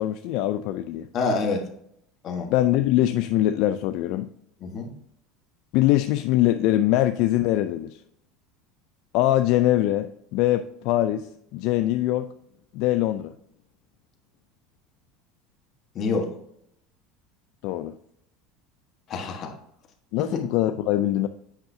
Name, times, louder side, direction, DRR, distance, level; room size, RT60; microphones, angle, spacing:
voice 1, 0.0-1.1 2.5-4.3 5.7-8.0 9.1-12.3 12.7-13.3 17.6-17.9 20.1-21.3, left 14 dB, 60° left, 8 dB, 0.3 m, -23 dB
voice 2, 1.1-1.7 2.2-2.5 4.6-4.9 15.9-16.3 19.1-19.5 20.2-20.4, left 4 dB, 35° left, 2 dB, 1.3 m, -27 dB
8.1 x 5.6 x 2.7 m, 0.74 s
cardioid pair, 150°, 0 cm